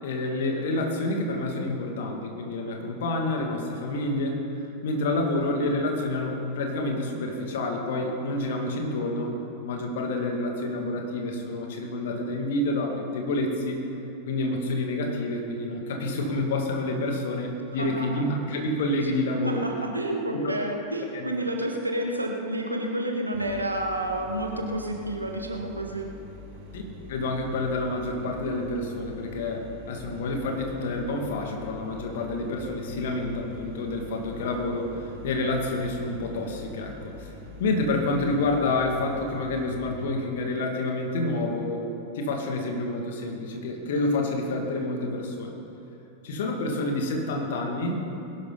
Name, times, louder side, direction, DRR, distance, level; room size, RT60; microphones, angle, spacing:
voice 1, 0.0-13.8 14.3-19.6 20.3-20.8 21.1-21.3 26.7-26.8 27.1-37.3 37.6-41.9 42.1-45.5 46.2-48.0, left 2 dB, 55° left, 2 dB, 2.3 m, -28 dB
voice 2, 17.8-18.2 19.4-26.1, right 1 dB, 85° right, 2 dB, 1.4 m, -30 dB
sound 1, 23.3-39.9, left 2 dB, 45° right, 3.4 m, -45 dB
21.0 x 12.0 x 4.1 m, 2.8 s
figure-of-eight pair, 90°, 0 cm